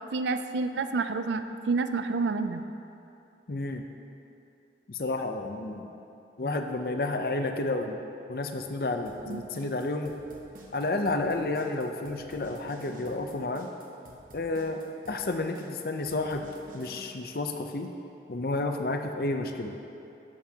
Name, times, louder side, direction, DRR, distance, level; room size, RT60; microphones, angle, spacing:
voice 1, 0.1-2.6 9.2-9.4, right 4 dB, 80° right, 9 dB, 0.4 m, -29 dB
voice 2, 3.5-3.8 4.9-5.9 6.4-8.0 8.3-10.1 10.7-13.7 14.3-16.4 16.7-17.9 18.3-19.7, left 2 dB, 55° left, 5 dB, 0.6 m, -31 dB
sound 1, 9.0-17.0, right 1 dB, 50° right, 1.1 m, -50 dB
12.0 x 8.1 x 2.8 m, 2.7 s
head